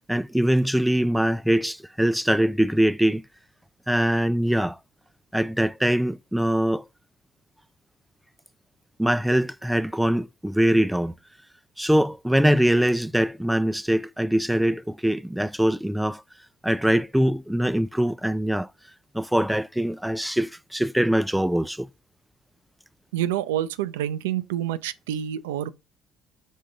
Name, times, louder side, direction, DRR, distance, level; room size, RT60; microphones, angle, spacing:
voice 1, 0.1-3.2 3.9-4.8 5.3-6.9 9.0-11.1 11.8-16.2 16.6-18.7 19.1-21.9, equal, 5° right, 0.3 m, -23 dB
voice 2, 23.1-25.7, right 11 dB, 75° right, 0.4 m, -27 dB
5.5 x 3.7 x 5.0 m
hypercardioid pair, 55°, 0 cm